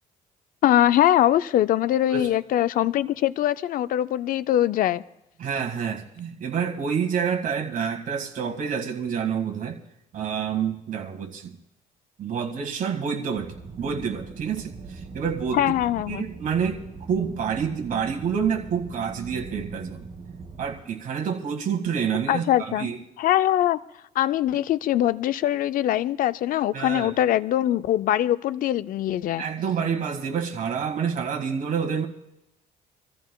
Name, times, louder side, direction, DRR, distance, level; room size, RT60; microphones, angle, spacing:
voice 1, 0.6-5.0 15.5-16.2 22.3-22.9 23.2-23.8 24.2-29.4, left 12 dB, 55° left, 0.4 m, -22 dB
voice 2, 5.4-9.8 10.1-11.6 12.2-15.8 16.1-20.1 20.6-23.0 26.7-27.1 29.4-32.1, right 7 dB, 50° right, 2.0 m, -28 dB
sound 1, 13.3-20.8, right 4 dB, 35° right, 2.3 m, -40 dB
26.0 x 14.0 x 2.3 m
cardioid pair, 110°, 17 cm